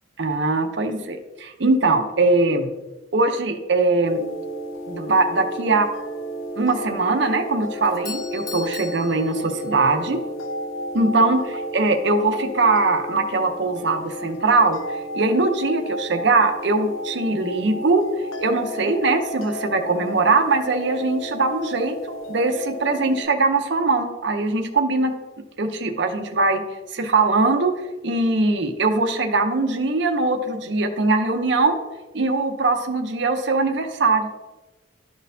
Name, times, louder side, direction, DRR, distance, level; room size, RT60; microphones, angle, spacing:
voice 1, 0.2-2.7 3.1-4.2 4.9-5.9 6.6-10.2 10.9-14.8 15.1-18.1 18.4-25.1 25.6-26.6 26.9-27.7 28.0-31.8 32.1-34.3, right 3 dB, 55° right, 6 dB, 0.7 m, -21 dB
sound 1, 4.0-23.2, equal, 80° left, 0.6 m, -33 dB
Doorbell, 7.8-10.0, left 5 dB, 20° left, 0.3 m, -38 dB
12.0 x 4.2 x 2.7 m, 1.2 s
head